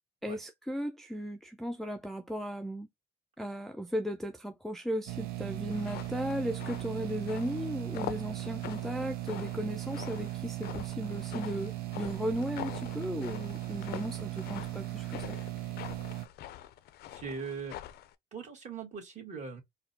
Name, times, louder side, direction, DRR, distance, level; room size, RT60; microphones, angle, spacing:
voice 1, 0.2-2.9 3.4-15.4, equal, ahead, 0.3 m, -36 dB
sound 1, 5.1-16.3, right 17 dB, 65° right, 0.6 m, -38 dB
sound 2, 5.7-18.1, left 13 dB, 70° left, 0.4 m, -45 dB
voice 2, 17.1-17.8 18.3-19.6, right 5 dB, 45° right, 1.6 m, -40 dB
4.1 x 2.2 x 2.6 m
cardioid pair, 110°, 17 cm